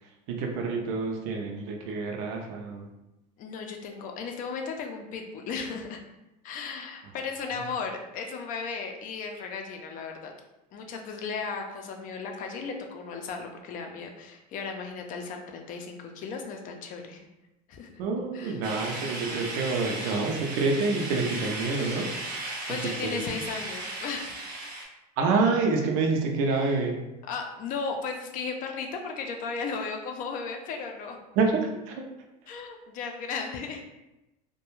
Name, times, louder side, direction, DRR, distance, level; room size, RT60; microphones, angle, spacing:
voice 1, 0.0-2.8 18.0-22.1 22.7-23.2 25.2-27.0 31.4-32.0, right 4 dB, 60° right, 1 dB, 0.5 m, -27 dB
voice 2, 3.4-6.0 6.4-10.3 10.7-17.3 17.7-17.9 18.3-18.6 22.7-24.3 26.5-26.6 27.3-31.2 32.5-33.8, left 5 dB, 40° left, 3 dB, 0.5 m, -35 dB
sound 1, 18.6-24.8, right 2 dB, 85° right, 0.9 m, -36 dB
2.3 x 2.2 x 3.0 m, 0.96 s
supercardioid pair, 110°, 20 cm